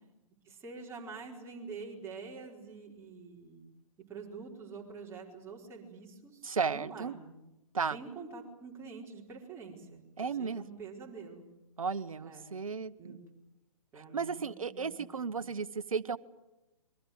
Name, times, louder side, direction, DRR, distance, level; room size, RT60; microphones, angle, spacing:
voice 1, 0.4-3.7 4.1-7.4 7.9-11.4 12.2-12.5 13.0-13.2 13.9-15.5, right 4 dB, 15° right, -1 dB, 4.7 m, -47 dB
voice 2, 6.4-7.2 7.7-8.0 10.2-10.6 11.8-13.2 14.0-16.2, right 5 dB, 70° right, 14 dB, 1.2 m, -34 dB
26.0 x 23.0 x 7.9 m, 0.97 s
figure-of-eight pair, 125°, 18 cm